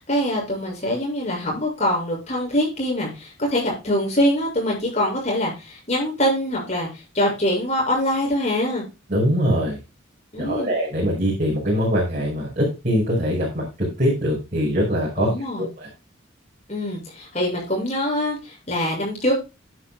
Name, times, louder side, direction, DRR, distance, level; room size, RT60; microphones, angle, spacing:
voice 1, 0.0-8.9 10.3-10.7 15.2-15.7 16.7-19.3, left 1 dB, 35° left, 0 dB, 7.0 m, -24 dB
voice 2, 9.1-9.8 10.4-15.3 15.6-15.9, equal, 40° right, -3 dB, 5.5 m, -22 dB
14.0 x 10.5 x 2.3 m, 0.27 s
head